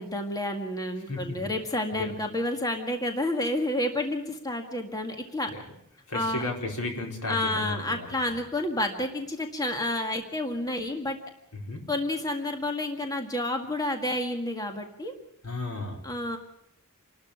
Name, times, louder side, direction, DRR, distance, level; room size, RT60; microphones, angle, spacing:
voice 1, 0.0-5.5 6.1-6.4 7.3-11.2 11.9-15.1 16.0-16.4, left 1 dB, 15° left, 4 dB, 1.9 m, -30 dB
voice 2, 1.1-1.4 2.0-2.1 5.5-5.6 6.1-8.2 11.6-11.9 15.4-16.0, left 2 dB, 75° left, 2 dB, 4.5 m, -34 dB
28.5 x 12.5 x 8.5 m, 0.77 s
head